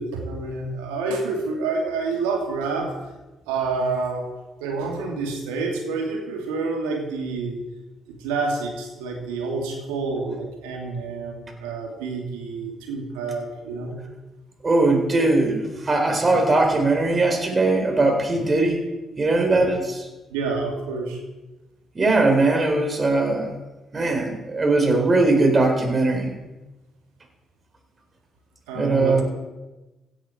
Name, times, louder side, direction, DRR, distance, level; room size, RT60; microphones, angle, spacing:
voice 1, 0.0-2.9 3.5-4.3 4.6-7.6 8.2-13.9 19.5-19.6 20.3-21.2 28.7-29.2, right 4 dB, 85° right, 1 dB, 2.6 m, -28 dB
voice 2, 14.6-18.8 19.2-20.0 22.0-23.5 23.9-26.3 28.8-29.2, right 2 dB, 40° right, 4 dB, 3.9 m, -20 dB
16.5 x 11.0 x 4.5 m, 1.1 s
hypercardioid pair, 45°, 0 cm